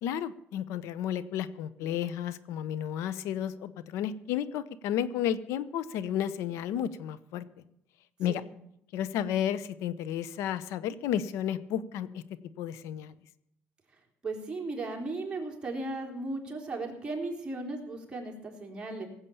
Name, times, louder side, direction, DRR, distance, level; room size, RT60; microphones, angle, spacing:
voice 1, 0.0-7.4 8.2-8.4 8.9-12.2 12.6-13.1, left 10 dB, 85° left, 16 dB, 0.8 m, -32 dB
voice 2, 14.2-19.1, right 2 dB, 20° right, 0 dB, 3.8 m, -36 dB
18.0 x 8.2 x 7.1 m, 0.78 s
cardioid pair, 110°, 5 cm